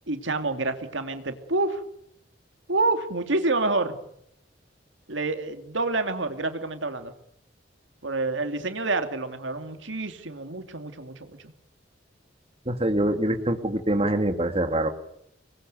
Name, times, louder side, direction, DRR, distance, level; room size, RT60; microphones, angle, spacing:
voice 1, 0.1-1.8 2.7-4.0 5.1-7.1 8.0-11.4, right 3 dB, 90° right, 8 dB, 2.7 m, -28 dB
voice 2, 12.7-14.9, right 1 dB, 30° right, 7 dB, 2.1 m, -24 dB
26.0 x 21.0 x 9.4 m, 0.77 s
head